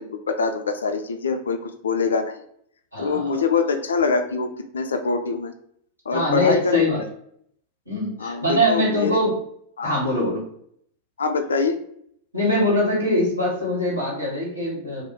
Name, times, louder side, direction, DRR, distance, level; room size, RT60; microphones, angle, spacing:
voice 1, 0.0-2.4 3.0-5.5 6.1-6.9 8.2-9.2 9.8-9.9 11.2-11.8, left 4 dB, 70° left, 7 dB, 0.4 m, -24 dB
voice 2, 2.9-3.3 6.1-7.0 7.9-9.4 9.8-10.5 12.3-15.0, equal, 90° right, -6 dB, 1.3 m, -22 dB
2.5 x 2.1 x 3.5 m, 0.67 s
figure-of-eight pair, 90°, 0 cm